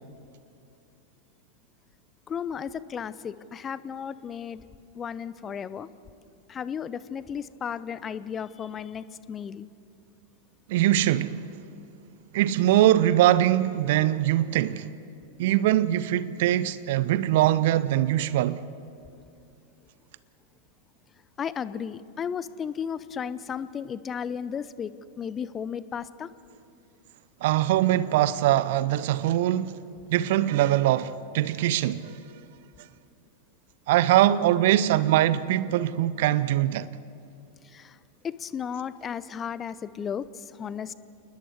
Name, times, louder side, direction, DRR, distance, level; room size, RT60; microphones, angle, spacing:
voice 1, 2.3-4.6 4.9-5.9 6.5-9.7 21.4-24.9 25.2-26.3 37.6-38.0 38.2-40.9, left 7 dB, 25° left, 0.6 m, -34 dB
voice 2, 10.7-11.4 12.3-14.9 15.4-18.6 27.4-29.8 30.1-32.2 33.9-36.9, right 13 dB, 50° right, 0.7 m, -22 dB
28.5 x 20.5 x 4.8 m
figure-of-eight pair, 90°, 0 cm